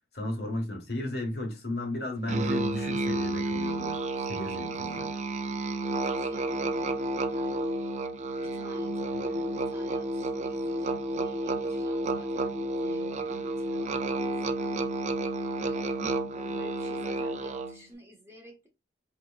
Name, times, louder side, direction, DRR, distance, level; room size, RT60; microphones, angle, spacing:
voice 1, 0.1-4.0 4.3-5.1, left 1 dB, 65° left, 1.4 m, -34 dB
Musical instrument, 2.3-17.8, right 2 dB, 40° right, 0.4 m, -31 dB
voice 2, 5.9-7.8 8.4-15.0 15.6-18.7, equal, 15° right, 1.2 m, -50 dB
4.5 x 3.0 x 2.3 m
head